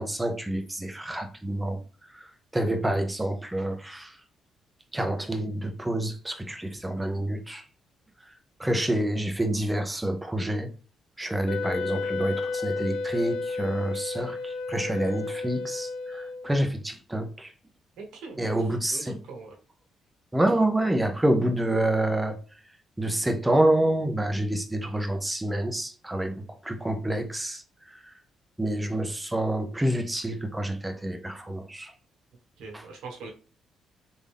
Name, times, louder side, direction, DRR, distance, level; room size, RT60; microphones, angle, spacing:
voice 1, 0.0-1.8 2.5-4.1 4.9-7.6 8.6-10.7 11.2-17.5 18.4-19.2 20.3-22.4 23.0-27.6 28.6-31.9, right 1 dB, 10° right, 0.7 m, -27 dB
Wind instrument woodwind instrument, 11.5-16.7, left 4 dB, 80° left, 0.4 m, -32 dB
voice 2, 18.0-18.5 18.9-19.6 32.6-33.3, right 4 dB, 85° right, 1.2 m, -41 dB
3.5 x 2.6 x 3.4 m
cardioid pair, 90°, 0 cm